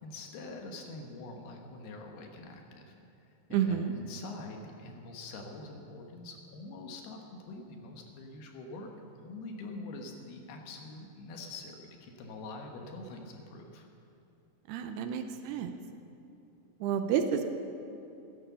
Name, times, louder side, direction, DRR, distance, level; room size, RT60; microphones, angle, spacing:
voice 1, 0.0-2.9 3.3-7.2 7.5-13.9, left 2 dB, 70° left, 2 dB, 3.1 m, -45 dB
voice 2, 3.5-3.9 14.7-15.7 16.8-17.5, right 8 dB, 80° right, 7 dB, 2.7 m, -30 dB
16.5 x 11.0 x 7.0 m, 2.8 s
omnidirectional pair, 5.0 m